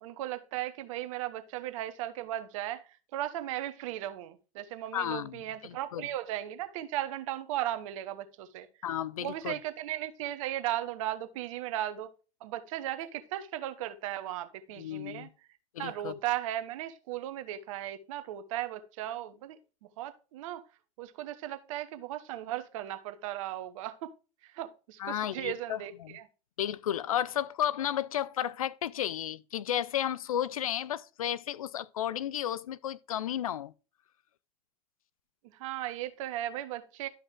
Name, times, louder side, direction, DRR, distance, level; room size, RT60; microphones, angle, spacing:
voice 1, 0.0-8.7 9.2-12.1 12.4-15.3 15.8-19.6 20.0-20.6 21.0-24.1 24.4-26.2 35.5-37.1, right 13 dB, 70° right, 1.1 m, -36 dB
voice 2, 4.9-6.1 8.8-9.6 14.8-15.3 15.7-16.1 25.0-26.2 26.6-33.7, left 10 dB, 85° left, 0.4 m, -33 dB
12.0 x 5.4 x 3.7 m
hypercardioid pair, 75°, 18 cm